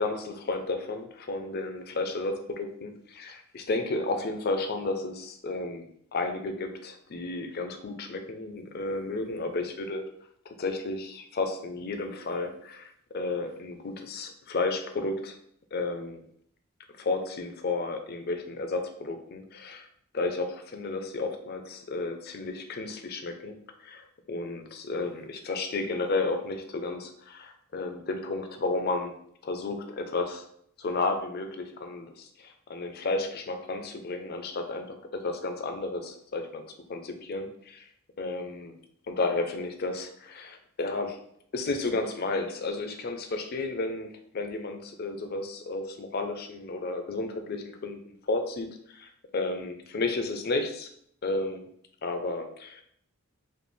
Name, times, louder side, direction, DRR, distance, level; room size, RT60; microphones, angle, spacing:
voice 1, 0.0-5.9 6.1-10.0 10.5-15.4 15.7-16.2 17.0-19.9 20.1-29.1 29.4-30.4 30.8-36.6 36.9-37.9 38.2-38.7 39.1-41.2 41.5-50.9 51.2-51.7 52.0-52.8, left 3 dB, 45° left, 6 dB, 0.5 m, -32 dB
5.1 x 2.4 x 3.2 m, 0.68 s
head